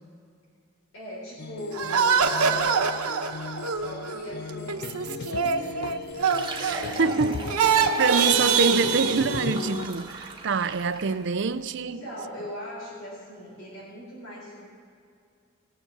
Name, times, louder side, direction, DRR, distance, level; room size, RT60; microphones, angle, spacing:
voice 1, 0.9-2.7 3.6-5.1 5.4-6.2 6.6-7.7 11.8-14.7, equal, 70° left, 3.9 m, -40 dB
sound 1, 1.4-9.9, left 5 dB, 45° left, 0.3 m, -37 dB
sound 2, 1.8-7.2 7.5-9.9, right 6 dB, 85° right, 1.0 m, -25 dB
Fill (with liquid), 6.1-11.3, right 3 dB, 20° right, 1.4 m, -38 dB
voice 2, 6.5-7.4 8.0-12.0, right 4 dB, 55° right, 0.5 m, -26 dB
18.0 x 7.1 x 8.2 m
head